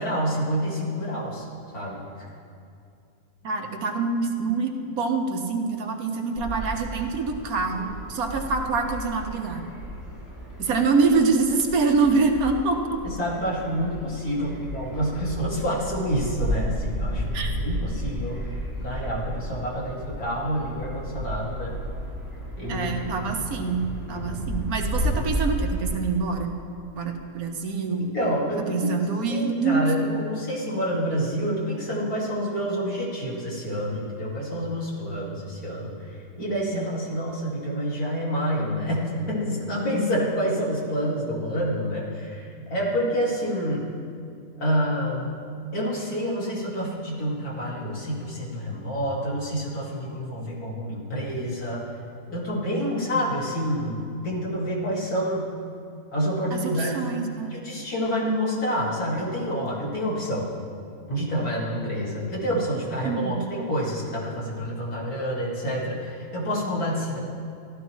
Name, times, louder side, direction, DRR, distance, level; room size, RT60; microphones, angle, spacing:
voice 1, 0.0-1.5 1.7-2.1 13.0-21.8 22.6-23.1 28.1-28.9 29.3-43.9 44.6-45.3 45.7-51.8 52.3-55.5 56.1-57.0 57.5-60.5 61.1-67.2, equal, 90° left, -5 dB, 2.7 m, -28 dB
voice 2, 3.4-4.7 5.0-9.7 10.6-13.0 14.4-14.5 17.3-17.5 22.7-23.8 24.1-26.5 26.9-28.1 28.7-29.9 36.4-36.9 56.5-57.5 63.0-63.4, right 4 dB, 80° right, 3 dB, 1.4 m, -25 dB
sound 1, 6.4-25.9, equal, 45° left, 2.8 m, -33 dB
15.0 x 12.5 x 3.1 m, 2.5 s
omnidirectional pair, 1.5 m